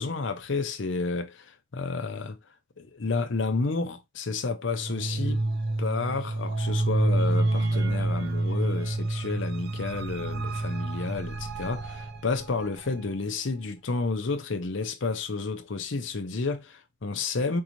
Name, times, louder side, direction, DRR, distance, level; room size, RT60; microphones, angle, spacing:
voice 1, 0.0-2.4 2.8-5.4 5.8-17.6, left 3 dB, 70° left, 0.7 m, -31 dB
sound 1, 4.7-13.0, right 2 dB, 50° right, 0.5 m, -28 dB
4.6 x 2.6 x 3.0 m
head